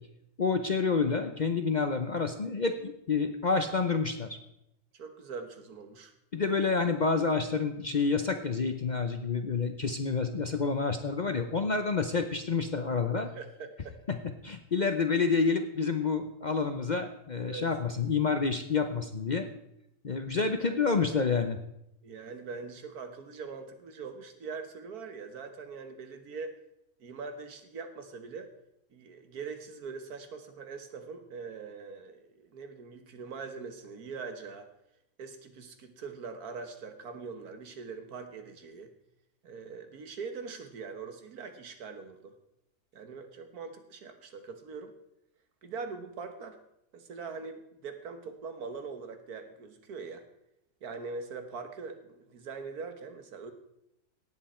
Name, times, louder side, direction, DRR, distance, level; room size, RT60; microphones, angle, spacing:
voice 1, 0.4-4.4 6.3-13.3 14.1-14.2 14.4-19.5 20.0-21.6, left 4 dB, 45° left, 7 dB, 0.6 m, -28 dB
voice 2, 4.9-6.1 13.3-14.0 17.4-17.7 20.6-21.2 22.0-26.5 27.0-28.5 28.9-34.7 35.2-38.9 39.4-42.3 42.9-44.9 45.6-46.6 46.9-50.2 50.8-53.5, right 5 dB, 90° right, 7 dB, 1.8 m, -42 dB
17.5 x 7.7 x 4.3 m, 0.81 s
omnidirectional pair, 1.5 m